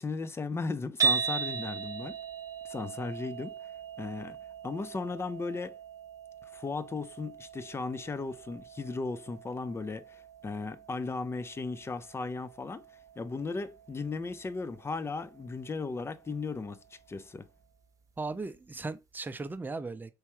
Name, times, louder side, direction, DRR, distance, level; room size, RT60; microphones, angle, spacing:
voice 1, 0.0-2.2 2.6-3.5 4.0-4.4 4.6-5.8 6.5-12.8 13.2-17.5, left 3 dB, 25° left, 0.6 m, -36 dB
sound 1, 1.0-17.2, right 6 dB, 35° right, 1.0 m, -39 dB
voice 2, 18.2-20.1, right 3 dB, 20° right, 0.7 m, -37 dB
4.7 x 3.2 x 3.0 m
hypercardioid pair, 60°, 10 cm